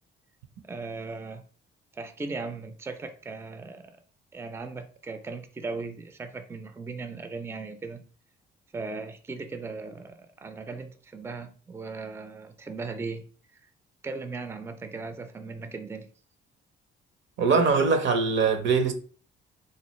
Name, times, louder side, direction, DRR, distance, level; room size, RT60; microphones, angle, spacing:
voice 1, 0.7-1.4 1.9-3.9 4.3-8.0 8.7-13.3 13.5-13.6 14.0-16.1, right 3 dB, 15° right, 0.4 m, -37 dB
voice 2, 17.4-18.9, right 4 dB, 70° right, 0.7 m, -22 dB
3.9 x 2.3 x 3.0 m
cardioid pair, 90°, 20 cm